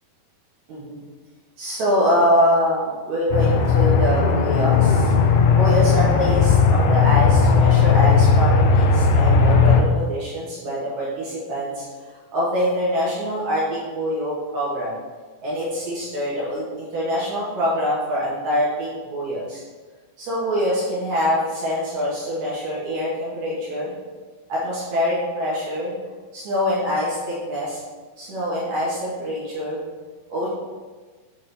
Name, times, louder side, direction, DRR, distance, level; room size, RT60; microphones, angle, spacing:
voice 1, 0.7-1.0 1.6-5.1 5.6-11.9 12.3-15.0 15.4-19.6 20.2-23.9 24.5-25.9 26.3-27.8 28.2-29.8 30.3-30.5, equal, 55° right, -7 dB, 2.1 m, -24 dB
Aircraft, 3.3-9.8, left 5 dB, 85° left, 2.7 m, -16 dB
8.4 x 4.0 x 4.0 m, 1.4 s
omnidirectional pair, 4.9 m